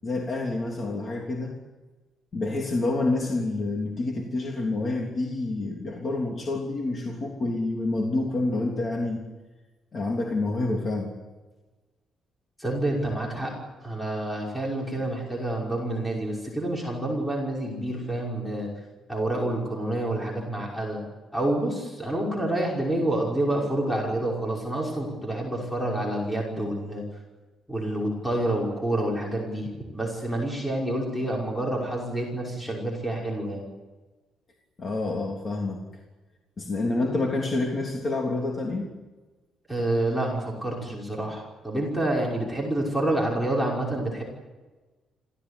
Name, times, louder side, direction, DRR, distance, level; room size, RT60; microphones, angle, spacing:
voice 1, 0.0-1.6 2.3-9.2 9.9-11.1 34.8-35.8 36.6-38.9, left 2 dB, 30° left, 0 dB, 3.2 m, -28 dB
voice 2, 12.6-13.5 13.8-18.7 19.1-21.0 21.3-27.0 27.7-33.6 39.7-44.2, right 1 dB, 5° left, -2 dB, 5.6 m, -28 dB
27.0 x 17.0 x 10.0 m, 1.2 s
cardioid pair, 170°, 0 cm